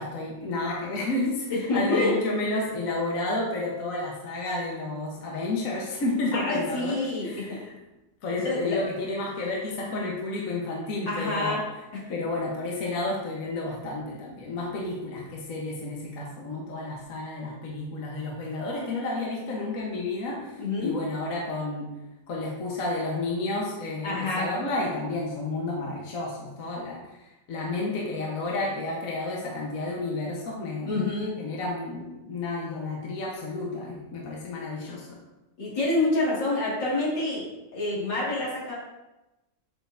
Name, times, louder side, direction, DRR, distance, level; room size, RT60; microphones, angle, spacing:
voice 1, 0.0-7.7 8.2-11.6 12.1-21.9 22.3-35.2, left 2 dB, 50° left, -3 dB, 1.5 m, -31 dB
voice 2, 1.5-2.1 6.3-7.6 8.4-8.8 11.1-11.6 11.9-12.2 20.6-20.9 24.0-24.5 30.8-31.4 35.6-37.4 37.7-38.8, left 2 dB, 75° left, -7 dB, 3.0 m, -27 dB
7.9 x 7.0 x 2.7 m, 1.0 s
omnidirectional pair, 2.0 m